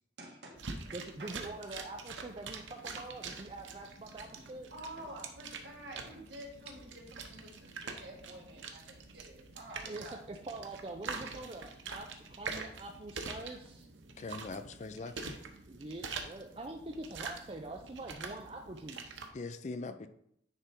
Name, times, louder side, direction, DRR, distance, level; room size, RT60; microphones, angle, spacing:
voice 1, 0.2-0.8 1.2-1.4 4.7-7.5 7.8-10.2 16.0-16.1, right 1 dB, 65° right, 1.6 m, -49 dB
sound 1, 0.6-19.3, right 4 dB, 90° right, 0.9 m, -45 dB
voice 2, 0.9-4.7 9.9-12.1 12.4-13.9 15.7-19.2, right 2 dB, 30° right, 0.5 m, -44 dB
voice 3, 14.2-15.4 19.3-20.1, left 3 dB, 40° left, 0.4 m, -41 dB
9.8 x 3.4 x 4.4 m
head